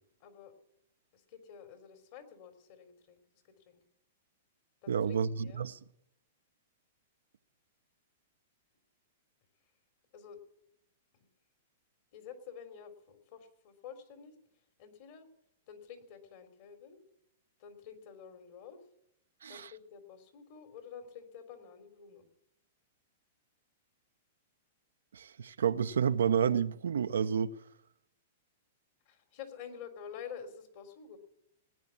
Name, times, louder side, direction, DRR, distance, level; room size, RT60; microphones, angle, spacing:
voice 1, 0.2-0.5 1.1-3.2 3.6-3.8 4.8-5.7 10.1-10.4 12.1-14.4 14.8-15.3 15.7-17.0 17.6-18.8 19.5-22.3 29.1-31.2, left 7 dB, 55° left, 3.5 m, -49 dB
voice 2, 4.9-5.8 19.4-19.7 25.1-27.5, right 7 dB, 90° right, 0.7 m, -30 dB
18.5 x 9.6 x 7.3 m
hypercardioid pair, 135°, 0 cm